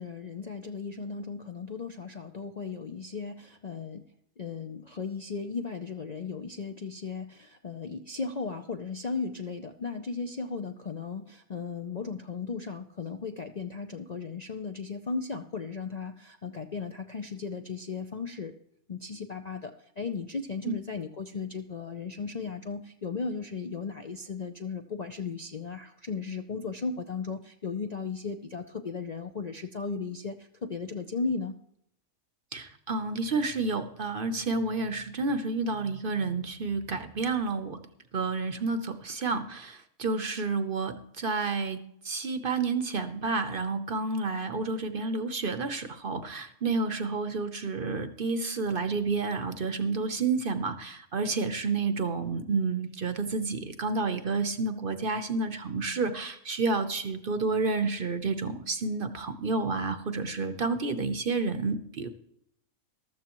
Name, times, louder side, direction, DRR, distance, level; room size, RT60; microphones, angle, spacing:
voice 1, 0.0-4.0 4.4-18.5 18.9-31.5, left 4 dB, 45° left, 5 dB, 0.6 m, -36 dB
voice 2, 32.5-37.8 38.1-41.8 42.0-62.1, right 4 dB, 45° right, 9 dB, 0.9 m, -30 dB
14.0 x 13.0 x 3.0 m, 0.74 s
omnidirectional pair, 1.4 m